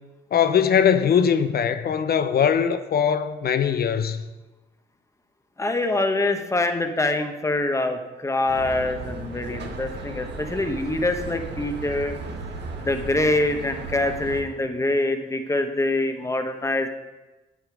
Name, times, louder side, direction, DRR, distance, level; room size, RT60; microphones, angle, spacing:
voice 1, 0.3-4.2, left 7 dB, 50° left, 0.8 m, -21 dB
voice 2, 5.6-12.1 12.8-16.9, left 2 dB, 15° left, 1.1 m, -25 dB
sound 1, 8.5-14.4, right 2 dB, 60° right, 1.6 m, -35 dB
9.0 x 8.4 x 4.7 m
cardioid pair, 90°, 20 cm